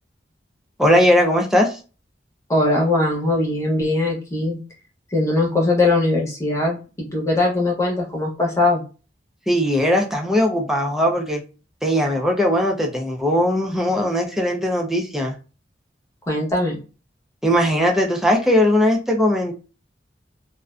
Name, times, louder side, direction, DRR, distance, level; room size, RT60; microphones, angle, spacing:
voice 1, 0.8-1.8 9.5-11.4 11.8-15.3 17.4-19.5, equal, ahead, 0 dB, 0.4 m, -19 dB
voice 2, 2.5-4.6 5.1-8.8 16.3-16.8, left 2 dB, 15° left, -2 dB, 0.8 m, -20 dB
2.4 x 2.1 x 2.4 m, 0.33 s
head